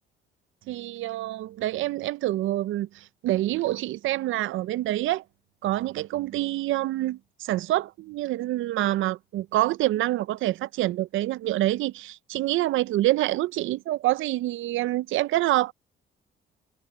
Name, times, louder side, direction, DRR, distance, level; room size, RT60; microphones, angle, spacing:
voice 1, 0.7-5.2 5.6-15.7, right 15 dB, 80° right, 0.5 m, -26 dB
cardioid pair, 90°, 20 cm